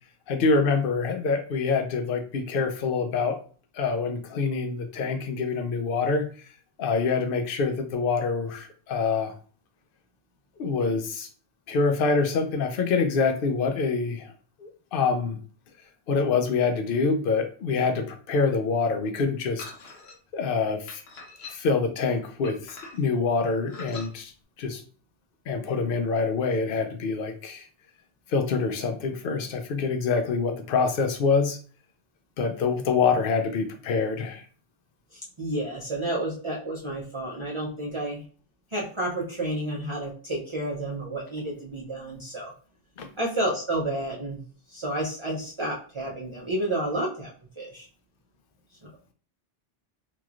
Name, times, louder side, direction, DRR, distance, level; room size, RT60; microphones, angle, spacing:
voice 1, 0.3-3.4 3.7-6.3 6.8-9.3 10.6-11.3 11.7-14.3 14.6-15.4 16.1-19.7 20.3-21.0 21.5-24.3 24.6-24.8 25.5-27.7 28.3-31.6 32.4-34.4 43.0-43.1, left 4 dB, 65° left, 6 dB, 0.7 m, -25 dB
sound 1, 19.6-20.2 20.9-21.8 22.4-23.2 23.7-24.1, left 3 dB, 80° left, 1.0 m, -43 dB
voice 2, 35.1-38.2 38.7-42.5 43.2-44.4 44.7-47.3 47.6-47.9, right 1 dB, 35° right, -5 dB, 0.6 m, -30 dB
3.0 x 2.9 x 2.4 m, 0.41 s
omnidirectional pair, 1.1 m